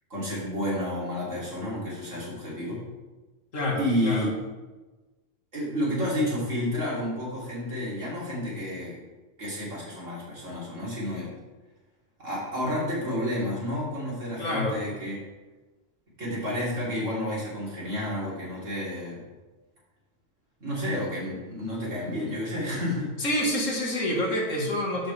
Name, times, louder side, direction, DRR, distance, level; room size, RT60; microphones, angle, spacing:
voice 1, 0.1-2.8 3.8-4.3 5.5-9.0 9.4-11.3 12.2-15.2 16.2-19.2 20.6-23.1, left 1 dB, 80° right, -6 dB, 3.6 m, -30 dB
voice 2, 3.5-4.3 14.4-14.8 23.2-25.1, left 1 dB, 90° left, -1 dB, 2.1 m, -27 dB
12.0 x 6.4 x 3.4 m, 1.2 s
omnidirectional pair, 1.3 m